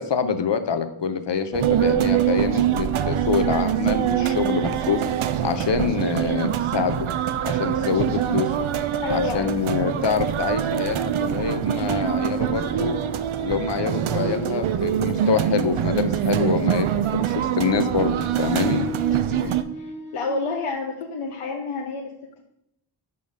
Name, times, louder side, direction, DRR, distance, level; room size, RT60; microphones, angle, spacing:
voice 1, 0.0-5.0 5.4-7.1 7.4-8.6 9.1-13.0 13.4-18.8, left 6 dB, 60° left, 9 dB, 0.8 m, -25 dB
sound 1, 0.9-6.2 7.3-8.6 9.0-9.2 9.8-10.3 11.9-16.3 17.6-20.7, right 2 dB, 40° left, 1.5 m, -39 dB
sound 2, 1.5-19.6, right 10 dB, 75° right, 0.6 m, -24 dB
voice 2, 9.0-9.7 18.7-19.0 19.3-19.8 20.1-22.1, left 4 dB, 85° left, 0 dB, 0.9 m, -29 dB
5.5 x 5.0 x 5.4 m, 0.82 s
wide cardioid pair, 90°, 49 cm